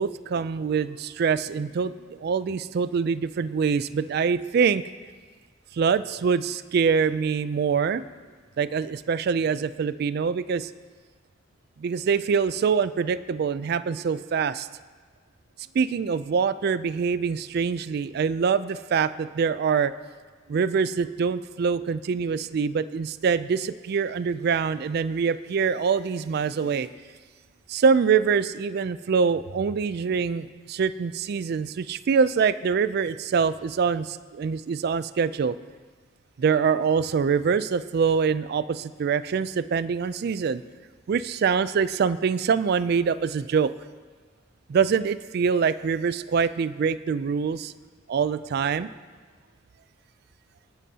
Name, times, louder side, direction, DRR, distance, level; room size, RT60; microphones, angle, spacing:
voice 1, 0.0-4.8 5.7-8.0 8.6-10.7 11.8-14.7 15.7-19.9 20.5-26.9 27.7-35.6 36.4-40.6 41.1-43.7 44.7-47.7 48.1-48.9, right 6 dB, 55° right, 15 dB, 0.3 m, -24 dB
19.5 x 11.0 x 2.8 m, 1.5 s
head